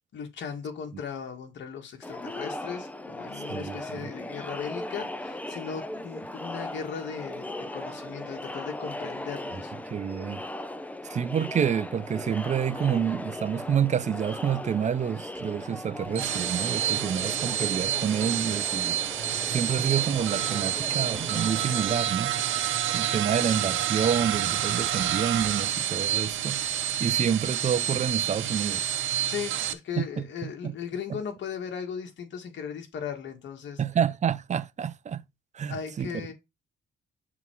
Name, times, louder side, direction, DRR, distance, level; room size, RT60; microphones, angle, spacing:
voice 1, 0.1-7.5 7.7-9.7 29.3-33.8 35.7-36.3, left 7 dB, 65° left, 2.0 m, -37 dB
Crowd, 2.0-22.0, left 1 dB, 5° left, 0.7 m, -38 dB
voice 2, 3.5-4.1 9.5-10.4 11.0-19.0 19.5-22.4 22.9-26.6 27.0-28.9 30.0-30.7 31.1-31.2 33.8-35.2 35.5-36.3, right 8 dB, 35° right, 0.6 m, -28 dB
sound 1, 16.0-29.7, right 11 dB, 80° right, 0.8 m, -28 dB
6.9 x 3.9 x 4.6 m
cardioid pair, 90°, 20 cm